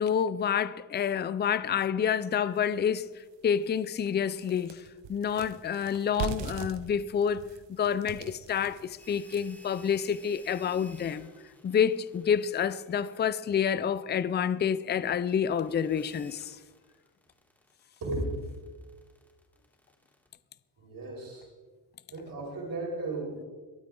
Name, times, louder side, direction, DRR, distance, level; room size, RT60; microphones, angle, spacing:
voice 1, 0.0-3.1 3.4-4.8 5.1-7.4 7.7-11.3 11.6-16.6, left 8 dB, 25° left, 0.5 m, -28 dB
sound 1, 2.6-2.7 3.2-3.3 3.6-9.7, right 8 dB, 75° right, 1.1 m, -41 dB
sound 2, 9.0-20.3, equal, 5° left, 3.5 m, -57 dB
voice 2, 18.0-18.5 20.8-21.5 22.1-23.4, right 2 dB, 50° right, 5.3 m, -35 dB
23.0 x 8.6 x 3.8 m
cardioid pair, 110°, 44 cm